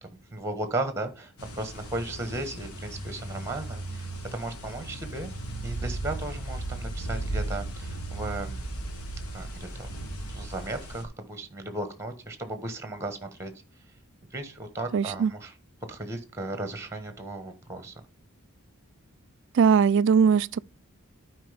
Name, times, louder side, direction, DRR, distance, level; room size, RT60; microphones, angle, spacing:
voice 1, 0.0-5.3 5.6-8.7 9.3-10.0 10.3-13.5 14.3-15.5 15.9-17.9, right 2 dB, 10° right, 1.3 m, -35 dB
sound 1, 1.4-11.0, right 2 dB, 85° left, 1.5 m, -36 dB
voice 2, 14.9-15.3 19.5-20.6, right 6 dB, 55° right, 0.3 m, -20 dB
12.0 x 4.9 x 3.4 m
head